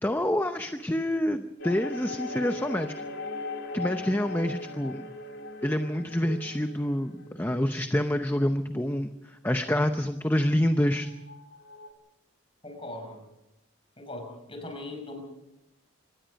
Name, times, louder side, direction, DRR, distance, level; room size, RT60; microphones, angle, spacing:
voice 1, 0.0-2.9 3.7-5.0 5.6-11.1, left 1 dB, 10° left, 7 dB, 0.7 m, -27 dB
sound 1, 1.6-8.4 10.7-11.9, left 2 dB, 60° left, 2.8 m, -39 dB
voice 2, 12.6-13.2 14.0-15.2, left 2 dB, 25° left, 4 dB, 5.5 m, -39 dB
25.5 x 19.5 x 5.3 m, 0.90 s
head